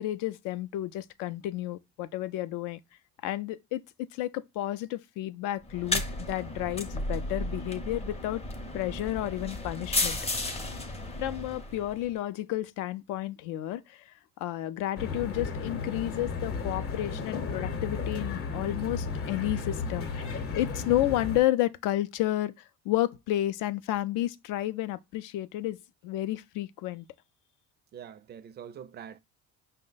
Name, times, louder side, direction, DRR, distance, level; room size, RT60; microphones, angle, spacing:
voice 1, 0.0-2.8 3.2-3.8 4.1-8.4 8.7-10.2 11.2-22.5 22.9-25.8 26.0-27.1, left 14 dB, 70° left, 0.5 m, -31 dB
sound 1, 5.7-12.1, left 2 dB, 20° left, 0.6 m, -33 dB
sound 2, 15.0-21.4, left 4 dB, 45° left, 0.8 m, -34 dB
voice 2, 27.9-29.2, right 8 dB, 35° right, 0.4 m, -44 dB
5.3 x 2.1 x 3.8 m
cardioid pair, 125°, 32 cm